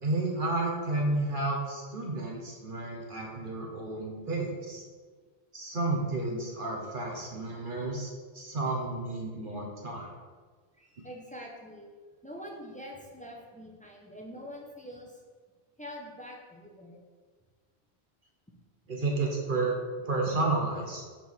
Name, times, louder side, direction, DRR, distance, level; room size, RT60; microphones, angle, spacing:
voice 1, 0.0-4.8 5.5-10.1 18.9-19.7 20.1-21.0, right 2 dB, 50° right, -1 dB, 1.2 m, -31 dB
voice 2, 10.8-11.9 12.2-15.2 15.8-17.0, equal, 10° left, -1 dB, 0.9 m, -45 dB
5.3 x 4.3 x 6.2 m, 1.5 s
omnidirectional pair, 1.1 m